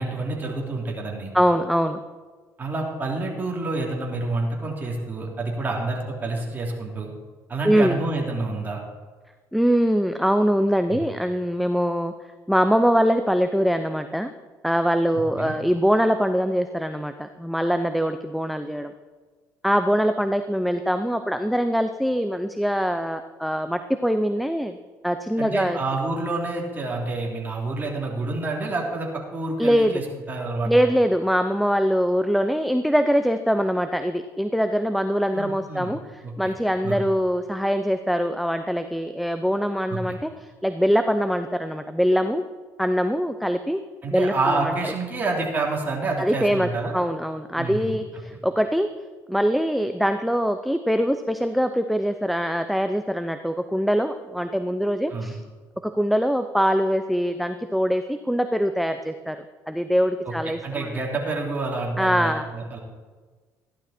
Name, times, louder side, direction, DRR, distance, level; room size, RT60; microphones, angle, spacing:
voice 1, 0.0-1.3 2.6-7.1 7.5-8.8 10.9-11.0 15.4-15.5 25.4-30.8 35.3-35.9 36.2-36.5 36.8-37.0 39.9-40.2 44.0-46.9 47.5-48.0 55.1-55.3 60.6-62.8, right 3 dB, 25° right, -1 dB, 3.3 m, -28 dB
voice 2, 1.3-2.0 7.6-8.0 9.5-12.1 12.5-14.3 14.6-18.9 19.6-24.8 25.0-25.8 29.6-30.0 30.7-42.4 42.8-43.8 44.1-44.7 46.2-48.9 49.3-55.4 55.8-59.4 59.7-61.0 62.0-62.5, equal, ahead, 8 dB, 0.6 m, -23 dB
14.5 x 11.5 x 4.4 m, 1.4 s
cardioid pair, 110°, 7 cm